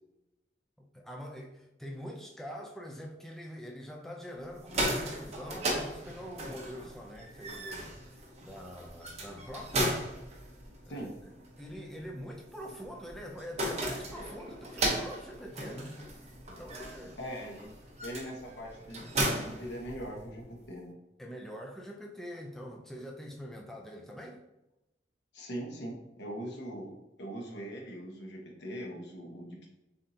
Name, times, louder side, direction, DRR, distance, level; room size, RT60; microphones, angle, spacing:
voice 1, 0.8-10.0 10.8-11.1 11.6-16.0 16.5-17.2 21.2-24.4, equal, ahead, 0.4 m, -44 dB
sound 1, 4.5-20.4, right 1 dB, 40° right, 0.9 m, -36 dB
voice 2, 17.2-17.7 18.0-21.0 25.3-29.7, equal, 85° left, 1.1 m, -41 dB
6.8 x 2.7 x 2.7 m
head